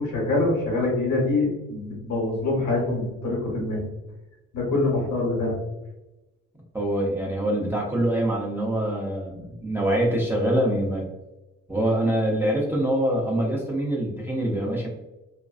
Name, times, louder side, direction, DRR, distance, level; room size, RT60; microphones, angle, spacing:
voice 1, 0.0-3.8 4.5-5.5, left 2 dB, 70° left, -3 dB, 1.1 m, -25 dB
voice 2, 6.7-11.1 11.7-14.9, right 1 dB, 5° right, -3 dB, 0.6 m, -24 dB
2.4 x 2.2 x 2.3 m, 1.0 s
cardioid pair, 90°, 30 cm